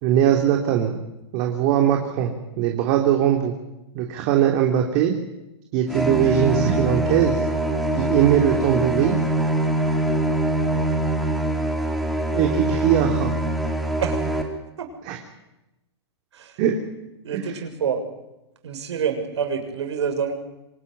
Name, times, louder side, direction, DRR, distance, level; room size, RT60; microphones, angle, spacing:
voice 1, 0.0-1.0 1.3-3.6 3.9-5.1 5.7-7.4 8.0-9.2 12.3-13.3 15.0-15.2 16.6-16.8 17.3-17.4, right 10 dB, 40° right, 2 dB, 3.4 m, -20 dB
sound 1, 5.9-14.4, right 1 dB, ahead, 3.7 m, -23 dB
voice 2, 17.2-18.0 18.6-20.3, right 7 dB, 75° right, 5 dB, 7.0 m, -27 dB
26.0 x 21.0 x 9.9 m, 0.95 s
hypercardioid pair, 145°, 15 cm